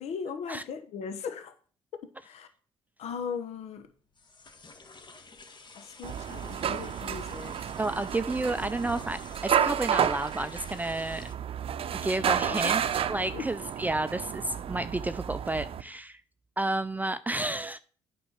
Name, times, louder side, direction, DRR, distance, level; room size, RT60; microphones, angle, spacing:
voice 1, 0.0-1.5 2.0-2.5 3.0-3.9 5.7-7.6 12.3-12.9 13.3-13.5, left 6 dB, 70° left, 1.1 m, -38 dB
sound 1, 3.3-11.3, left 3 dB, 40° left, 1.6 m, -52 dB
sound 2, 6.0-15.8, right 9 dB, 55° right, 0.6 m, -31 dB
voice 2, 7.8-11.3 12.0-16.2 16.6-17.8, right 2 dB, 15° right, 0.5 m, -31 dB
8.8 x 5.3 x 7.2 m
supercardioid pair, 65°, 11 cm